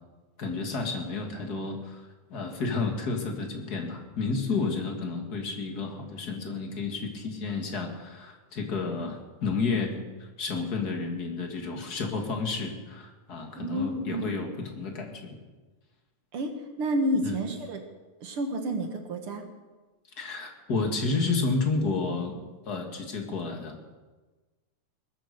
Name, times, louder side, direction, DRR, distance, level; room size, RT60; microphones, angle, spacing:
voice 1, 0.4-15.4 17.2-17.4 20.2-22.4 22.7-23.8, left 4 dB, 35° left, 3 dB, 2.1 m, -31 dB
voice 2, 13.6-14.4 16.3-16.5 16.8-17.8 18.2-19.4, right 1 dB, 55° right, 5 dB, 2.1 m, -30 dB
20.0 x 9.1 x 6.8 m, 1.2 s
omnidirectional pair, 3.4 m